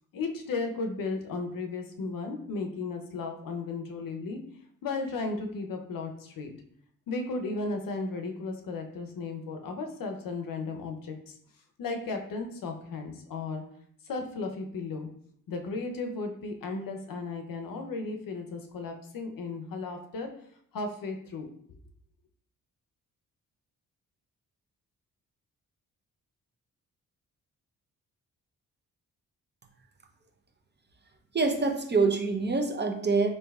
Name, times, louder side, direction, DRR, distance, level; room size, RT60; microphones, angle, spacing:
voice 1, 0.1-4.4 4.8-6.5 7.1-11.3 11.8-13.6 14.1-15.1 15.5-20.3 20.7-21.5, left 3 dB, 65° left, 4 dB, 0.7 m, -35 dB
voice 2, 31.3-33.3, right 4 dB, 30° right, 3 dB, 0.7 m, -25 dB
3.9 x 3.2 x 2.3 m, 0.67 s
supercardioid pair, 60°, 37 cm